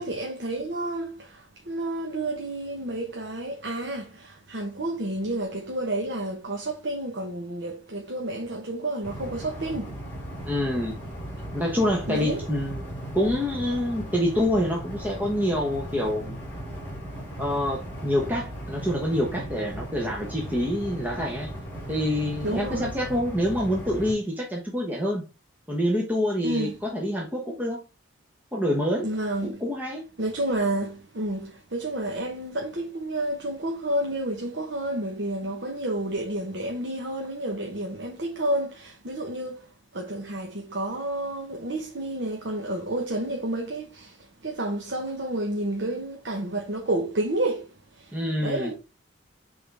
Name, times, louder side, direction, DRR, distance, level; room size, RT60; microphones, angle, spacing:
voice 1, 0.0-10.0 12.1-12.5 22.4-22.9 26.4-26.8 29.0-29.6 30.2-48.7, right 1 dB, 55° right, 1.1 m, -30 dB
sound 1, 9.0-24.1, equal, 10° left, 3.4 m, -37 dB
voice 2, 10.5-10.9 11.5-12.8 13.1-16.4 17.4-21.5 21.9-25.2 25.7-27.8 28.5-29.1 29.4-30.0 48.1-48.7, equal, 10° right, 1.1 m, -26 dB
8.8 x 3.9 x 3.4 m
head